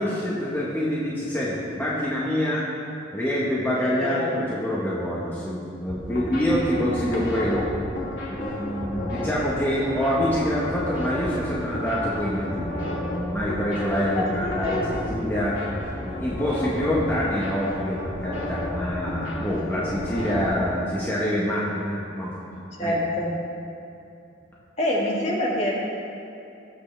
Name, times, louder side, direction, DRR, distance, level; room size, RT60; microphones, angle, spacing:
voice 1, 0.0-2.7 3.1-7.7 8.3-15.7 16.0-22.3 22.8-22.9, equal, 10° left, -7 dB, 1.2 m, -26 dB
voice 2, 3.8-4.3 14.4-14.8 22.8-23.3 24.8-25.7, left 1 dB, 35° left, -3 dB, 1.9 m, -26 dB
sound 1, 5.9-20.5, left 1 dB, 70° left, 2.6 m, -32 dB
18.5 x 8.1 x 3.4 m, 2.7 s
head